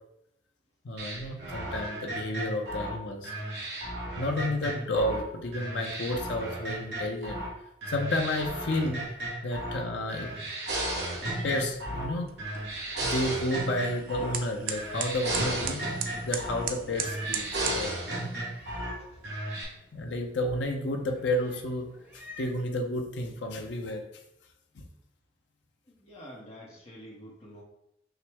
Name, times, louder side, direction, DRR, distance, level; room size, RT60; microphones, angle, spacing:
voice 1, 0.8-3.3 4.2-7.4 7.9-9.0 9.4-10.3 11.4-12.3 13.0-15.8 16.2-17.9 18.2-18.6 19.9-21.9 22.1-24.0 24.7-24.8, left 1 dB, 75° left, 3 dB, 0.6 m, -31 dB
sound 1, 1.0-5.2 5.5-7.5 7.8-9.8 10.1-12.1 12.4-14.4 14.7-16.7 17.0-18.9 19.2-19.6, right 1 dB, 65° right, 1.2 m, -34 dB
Meow, 10.6-22.6, right 1 dB, 10° right, 0.9 m, -50 dB
sound 2, 11.1-17.9, right 7 dB, 50° right, 0.4 m, -39 dB
voice 2, 19.0-19.5 25.9-27.6, equal, 35° left, -4 dB, 0.7 m, -49 dB
5.6 x 2.1 x 3.4 m, 0.81 s
head